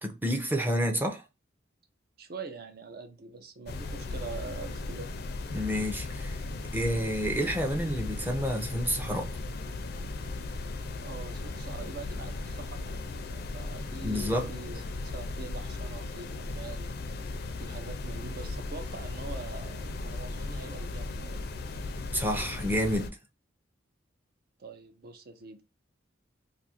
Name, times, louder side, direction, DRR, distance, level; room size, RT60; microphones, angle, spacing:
voice 1, 0.0-1.2 5.5-6.4 6.7-9.3 14.0-14.5 22.1-23.2, equal, 10° right, 0.6 m, -29 dB
voice 2, 2.2-5.1 11.0-16.9 17.6-21.4 24.6-25.6, right 4 dB, 50° right, 0.6 m, -44 dB
sound 1, 3.7-23.1, left 3 dB, 55° left, 0.4 m, -37 dB
2.7 x 2.5 x 4.2 m
head